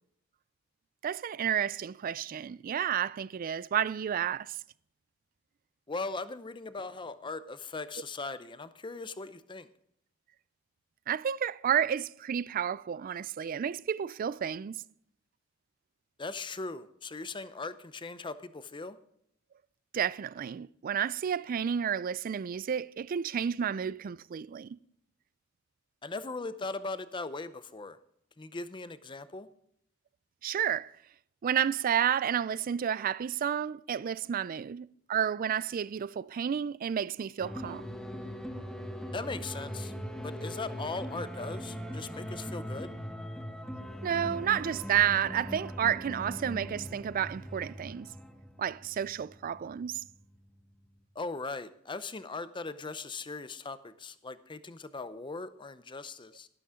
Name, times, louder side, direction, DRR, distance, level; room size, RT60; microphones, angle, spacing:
voice 1, 1.0-4.6 11.1-14.8 19.9-24.8 30.4-30.9 31.4-37.8 44.0-48.1 48.6-50.0, right 8 dB, 45° right, 0.3 m, -31 dB
voice 2, 5.9-9.7 16.2-19.0 26.0-28.0 28.4-29.5 39.1-39.9 40.2-42.9 51.2-56.5, left 3 dB, 25° left, 0.6 m, -39 dB
sound 1, 37.4-51.0, equal, 5° left, 1.2 m, -41 dB
12.5 x 12.5 x 3.7 m
head